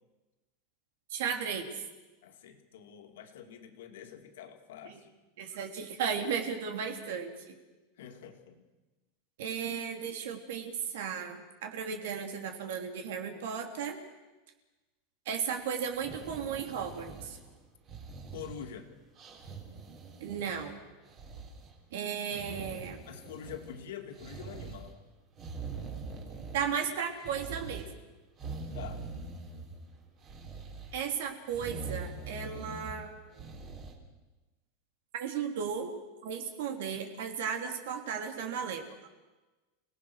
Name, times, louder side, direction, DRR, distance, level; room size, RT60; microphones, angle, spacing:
voice 1, 1.1-1.8 4.8-5.0 5.4-7.6 9.4-14.0 15.2-17.4 20.2-20.8 21.9-23.0 26.5-27.9 30.9-33.5 35.1-35.9 36.2-38.8, right 7 dB, 70° right, 4 dB, 3.2 m, -35 dB
voice 2, 2.2-5.1 8.0-8.6 18.3-18.9 23.1-25.0 28.7-29.0, left 8 dB, 80° left, 5 dB, 2.8 m, -45 dB
sound 1, 15.9-17.5 17.9-18.8 19.2-20.7 21.0-21.7 22.3-23.8 24.2-24.9 25.3-26.9 27.2-27.9 28.4-29.8 30.2-31.0 31.5-33.0 33.4-33.9, right 4 dB, 25° right, 3.6 m, -43 dB
29.0 x 18.5 x 6.4 m, 1.2 s
supercardioid pair, 170°, 0 cm